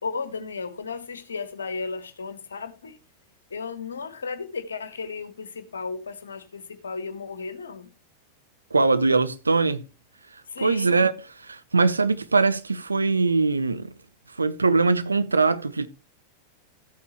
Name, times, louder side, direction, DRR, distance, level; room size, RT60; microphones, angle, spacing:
voice 1, 0.0-3.0 3.5-7.9 10.5-10.9, left 4 dB, 70° left, 1.2 m, -34 dB
voice 2, 8.7-9.8 10.6-11.1 11.4-13.9 14.4-15.9, right 4 dB, 80° right, 0.7 m, -21 dB
14.0 x 8.6 x 3.1 m
figure-of-eight pair, 90°, 0 cm